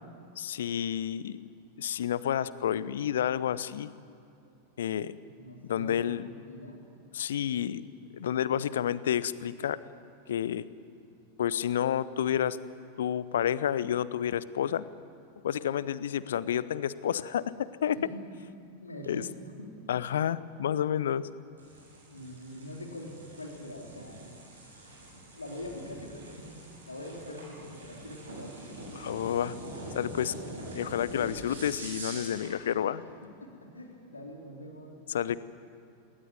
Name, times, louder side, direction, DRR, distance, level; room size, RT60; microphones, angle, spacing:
voice 1, 0.4-1.5 1.8-3.9 4.8-5.1 5.6-6.2 7.1-7.8 8.1-9.8 10.3-10.6 11.4-12.6 13.0-14.9 15.4-18.0 19.1-19.2 19.9-21.3 28.9-29.6 29.9-30.3 30.7-33.0 35.1-35.4, left 10 dB, 60° left, 18 dB, 0.7 m, -30 dB
voice 2, 5.2-6.8 18.0-18.2 18.8-19.7 22.0-24.3 25.1-28.6 31.1-31.4 33.2-35.0, left 1 dB, 80° left, 0 dB, 3.7 m, -44 dB
sound 1, 21.6-32.6, right 1 dB, 70° right, 7.8 m, -44 dB
20.0 x 19.0 x 9.4 m, 2.6 s
figure-of-eight pair, 90°, 0 cm